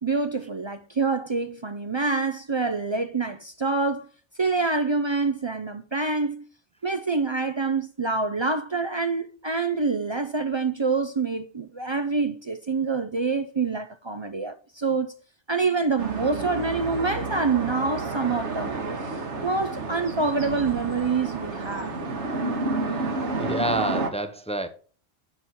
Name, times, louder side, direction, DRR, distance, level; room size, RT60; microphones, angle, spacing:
voice 1, 0.0-4.0 4.4-6.4 6.8-15.1 15.5-18.8 19.4-21.9, right 4 dB, 45° right, 0.3 m, -26 dB
sound 1, 16.0-24.1, right 3 dB, 70° right, 1.6 m, -30 dB
voice 2, 23.4-24.7, right 1 dB, 5° left, 0.6 m, -28 dB
7.8 x 6.2 x 4.2 m
omnidirectional pair, 1.2 m